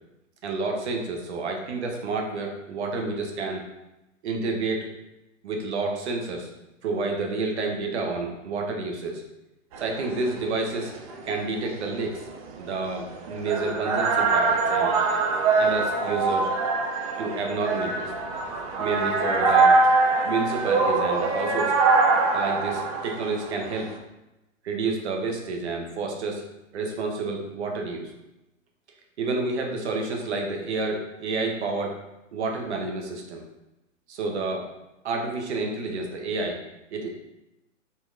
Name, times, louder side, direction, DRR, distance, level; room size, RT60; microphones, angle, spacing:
voice 1, 0.4-3.6 4.2-4.9 5.4-6.5 6.8-9.2 9.8-10.9 11.2-12.3 12.6-15.0 15.5-16.5 17.2-18.1 18.8-19.8 20.2-21.7 22.3-23.9 24.6-26.5 26.7-28.1 29.2-32.0 32.3-33.4 34.1-34.7 35.0-36.6 36.9-37.1, right 3 dB, 60° right, 2 dB, 1.1 m, -29 dB
sound 1, 9.7-24.0, right 3 dB, 30° right, 0.5 m, -24 dB
4.3 x 3.0 x 3.7 m, 0.95 s
figure-of-eight pair, 115°, 39 cm